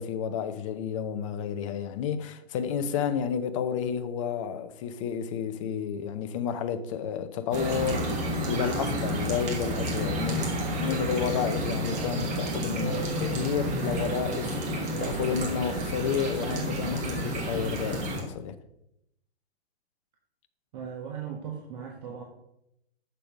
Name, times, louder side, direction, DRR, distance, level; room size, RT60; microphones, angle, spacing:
voice 1, 0.0-18.6, left 7 dB, 30° left, 0.6 m, -31 dB
sound 1, 7.5-18.2, right 1 dB, 20° right, 1.6 m, -30 dB
voice 2, 20.7-22.2, right 7 dB, 40° right, 1.2 m, -38 dB
6.8 x 5.6 x 5.2 m
figure-of-eight pair, 115°, 32 cm